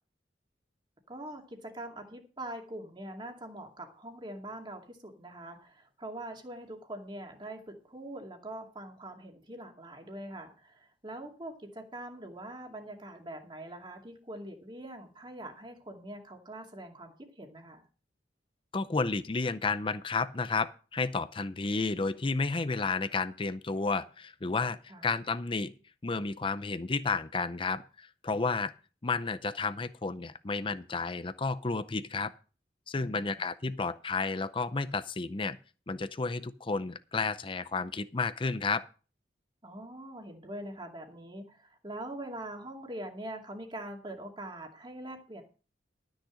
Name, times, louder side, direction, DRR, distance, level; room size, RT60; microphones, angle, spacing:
voice 1, 1.1-17.8 24.9-25.1 32.9-33.4 39.6-45.4, right 1 dB, 25° right, 2 dB, 2.4 m, -43 dB
voice 2, 18.7-25.7 26.0-28.7 29.0-32.3 32.9-35.6 35.9-38.8, left 4 dB, 30° left, 13 dB, 0.6 m, -32 dB
13.0 x 6.5 x 6.3 m, 0.35 s
head